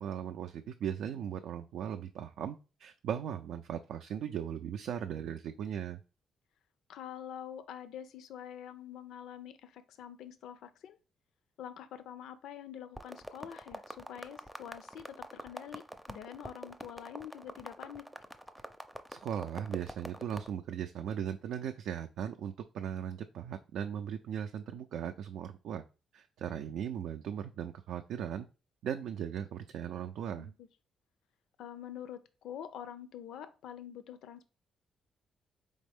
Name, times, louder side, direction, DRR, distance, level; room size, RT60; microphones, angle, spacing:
voice 1, 0.0-6.0 19.1-25.8 26.1-28.5 28.8-30.5, right 9 dB, 75° right, 0.4 m, -38 dB
voice 2, 6.9-11.0 11.6-18.1 30.4-30.7 31.6-34.4, left 9 dB, 80° left, 0.5 m, -46 dB
sound 1, 13.0-20.5, equal, ahead, 0.5 m, -45 dB
4.1 x 3.5 x 3.5 m
cardioid pair, 90°, 0 cm